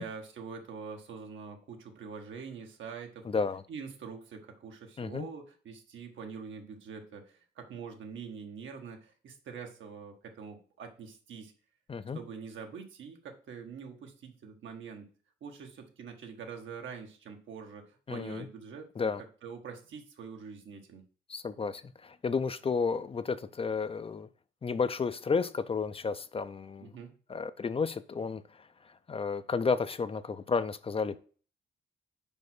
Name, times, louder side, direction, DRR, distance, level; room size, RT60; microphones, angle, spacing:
voice 1, 0.0-3.3 3.7-11.5 12.1-15.1 15.4-18.9 19.4-21.0 26.8-27.1, right 5 dB, 80° right, 1.5 m, -44 dB
voice 2, 3.2-3.6 5.0-5.3 11.9-12.2 18.1-18.5 19.0-19.2 21.3-24.3 24.6-26.9 27.3-31.2, left 5 dB, 30° left, 0.5 m, -32 dB
5.4 x 4.7 x 6.0 m
cardioid pair, 115°, 20 cm